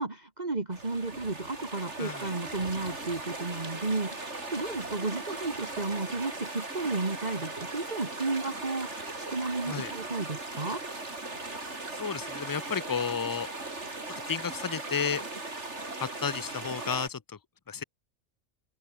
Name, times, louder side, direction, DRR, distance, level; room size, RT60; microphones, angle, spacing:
voice 1, 0.0-10.8, right 3 dB, 35° right, 2.3 m, -33 dB
sound 1, 0.7-17.1, right 2 dB, 60° right, 4.4 m, -38 dB
voice 2, 11.9-13.5 14.2-15.2 16.0-17.2 17.7-17.8, left 6 dB, 25° left, 0.4 m, -32 dB
open air
omnidirectional pair, 1.3 m